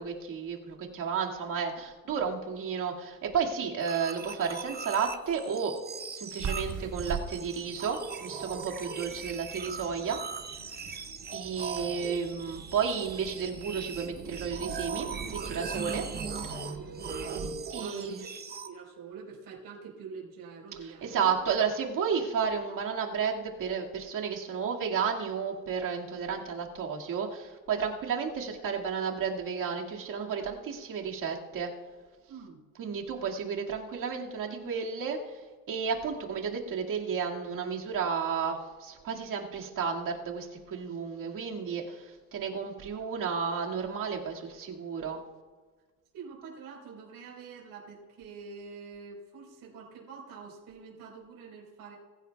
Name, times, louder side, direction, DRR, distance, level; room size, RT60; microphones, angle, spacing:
voice 1, 0.0-5.7 6.1-10.2 11.3-16.0 17.7-18.2 20.8-31.7 32.8-35.2 35.7-45.2, right 6 dB, 60° right, -1 dB, 2.2 m, -32 dB
sound 1, 3.8-18.7, right 5 dB, 25° right, 0.8 m, -40 dB
sound 2, 6.4-17.6, right 6 dB, 45° right, 1.3 m, -42 dB
voice 2, 16.7-18.3 18.6-21.3 32.3-32.6 46.1-52.0, right 5 dB, 80° right, -2 dB, 4.4 m, -45 dB
22.5 x 14.5 x 2.3 m, 1.4 s
cardioid pair, 150°, 36 cm